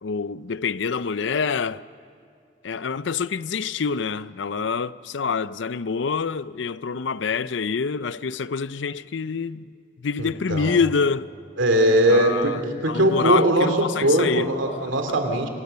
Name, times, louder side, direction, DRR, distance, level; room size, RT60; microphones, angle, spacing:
voice 1, 0.0-1.8 2.6-9.6 10.0-11.3 12.1-12.6 12.9-14.5, left 5 dB, 75° left, 0.5 m, -26 dB
voice 2, 10.2-10.7 11.6-12.5 12.8-15.5, right 1 dB, 90° right, 2.9 m, -20 dB
27.5 x 25.0 x 6.8 m
head